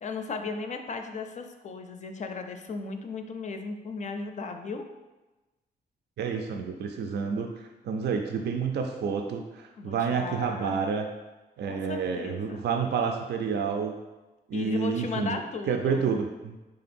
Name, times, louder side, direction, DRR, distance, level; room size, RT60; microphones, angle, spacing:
voice 1, 0.0-4.8 9.8-10.8 11.7-12.6 14.5-16.1, left 4 dB, 45° left, 6 dB, 0.4 m, -36 dB
voice 2, 6.2-11.1 11.6-13.9 14.5-15.4 15.7-16.6, right 6 dB, 75° right, 4 dB, 0.4 m, -29 dB
3.7 x 3.3 x 4.3 m, 1.1 s
wide cardioid pair, 135°, 17 cm